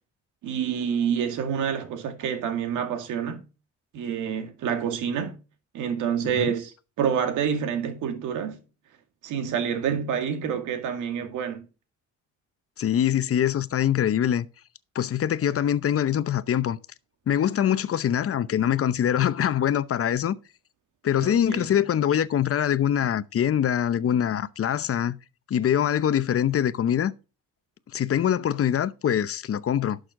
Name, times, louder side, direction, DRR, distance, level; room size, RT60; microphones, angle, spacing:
voice 1, 0.4-3.4 3.9-5.4 5.7-8.6 9.2-11.6 21.2-21.8, right 8 dB, 90° right, 2.2 m, -28 dB
voice 2, 12.8-14.5 14.9-16.8 17.3-20.4 21.0-25.2 25.5-27.1 27.9-30.0, left 9 dB, 50° left, 0.8 m, -24 dB
11.5 x 6.4 x 3.8 m
cardioid pair, 90°, 30 cm